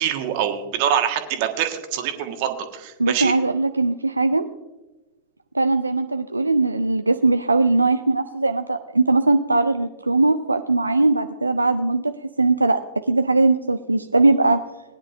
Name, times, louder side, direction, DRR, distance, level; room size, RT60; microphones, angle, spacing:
voice 1, 0.0-3.3, right 9 dB, 45° right, 5 dB, 1.5 m, -24 dB
voice 2, 3.0-4.4 5.5-12.1 12.4-12.8 13.1-14.6, right 3 dB, 80° right, 8 dB, 0.4 m, -20 dB
20.0 x 10.0 x 2.6 m, 1.1 s
figure-of-eight pair, 90°, 0 cm